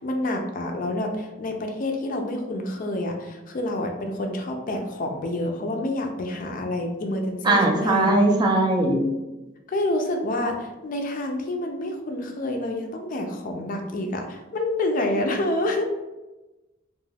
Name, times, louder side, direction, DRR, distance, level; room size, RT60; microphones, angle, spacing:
voice 1, 0.0-8.1 8.9-9.4 9.7-15.8, left 1 dB, 45° left, 3 dB, 0.4 m, -28 dB
voice 2, 7.4-9.0, right 2 dB, 25° right, 1 dB, 0.4 m, -19 dB
2.3 x 2.2 x 3.2 m, 1.1 s
head